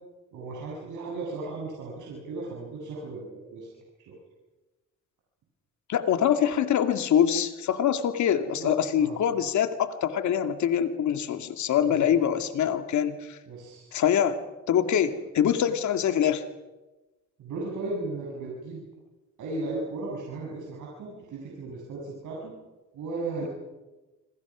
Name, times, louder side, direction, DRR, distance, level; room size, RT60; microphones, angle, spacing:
voice 1, 0.3-3.7 4.1-4.2 8.5-8.7 9.0-9.2 11.8-12.1 13.5-14.0 17.4-18.8 19.4-22.5 22.9-23.5, right 3 dB, 80° right, -3 dB, 7.6 m, -36 dB
voice 2, 5.9-13.4 13.9-14.3 14.7-16.4, left 9 dB, 70° left, 8 dB, 2.2 m, -24 dB
27.5 x 26.0 x 6.2 m, 1.1 s
cardioid pair, 90°, 30 cm